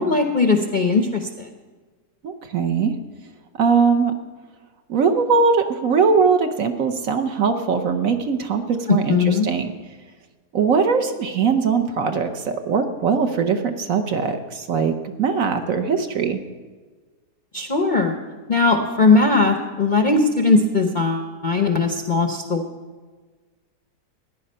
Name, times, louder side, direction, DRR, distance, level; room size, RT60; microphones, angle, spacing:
voice 1, 0.0-1.5 8.9-9.5 17.5-18.1 18.5-22.7, left 3 dB, 45° left, 4 dB, 0.6 m, -19 dB
voice 2, 2.2-2.9 3.6-4.1 4.9-9.7 10.5-16.4, right 5 dB, 60° right, 7 dB, 1.1 m, -21 dB
15.5 x 9.9 x 5.5 m, 1.4 s
omnidirectional pair, 1.8 m